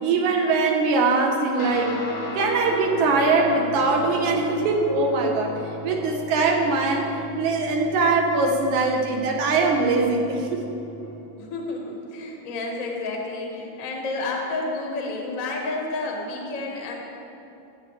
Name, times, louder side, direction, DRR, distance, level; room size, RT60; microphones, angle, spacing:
voice 1, 0.0-2.0 2.3-5.5 5.8-7.1 7.4-10.6, right 3 dB, 75° right, 1 dB, 2.4 m, -22 dB
Guitar, 1.6-11.2, left 2 dB, 50° left, 1.7 m, -36 dB
voice 2, 11.4-16.9, left 2 dB, 70° left, 0 dB, 0.7 m, -30 dB
15.5 x 7.5 x 3.2 m, 2.9 s
omnidirectional pair, 3.6 m